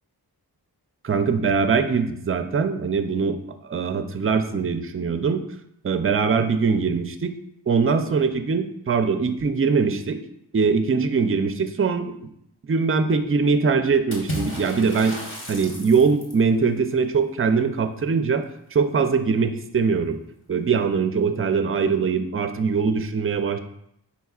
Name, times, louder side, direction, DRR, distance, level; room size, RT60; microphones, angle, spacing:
voice 1, 1.0-3.4 3.7-5.4 5.8-7.3 7.7-10.2 10.5-12.2 12.7-15.2 15.5-18.4 18.7-20.2 20.5-23.6, right 5 dB, 35° right, 9 dB, 0.4 m, -22 dB
Water / Splash splatter, 14.1-16.5, equal, 30° left, 1.1 m, -33 dB
5.4 x 4.2 x 2.3 m, 0.75 s
wide cardioid pair, 45°, 41 cm